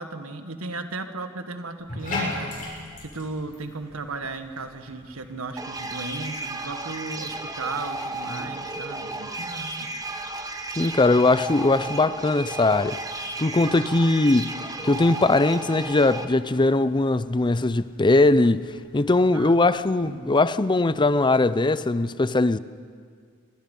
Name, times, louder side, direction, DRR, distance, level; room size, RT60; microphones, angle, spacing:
voice 1, 0.0-2.5 3.0-9.9 19.3-19.7 20.0-20.3, right 3 dB, 75° right, 1.6 m, -35 dB
Bathtub (filling or washing), 1.8-20.1, left 2 dB, 40° left, 7.4 m, -42 dB
sound 1, 5.6-16.2, right 2 dB, 15° right, 1.3 m, -33 dB
voice 2, 10.8-13.0 13.4-22.6, left 2 dB, 20° left, 0.5 m, -20 dB
27.5 x 24.5 x 5.5 m
head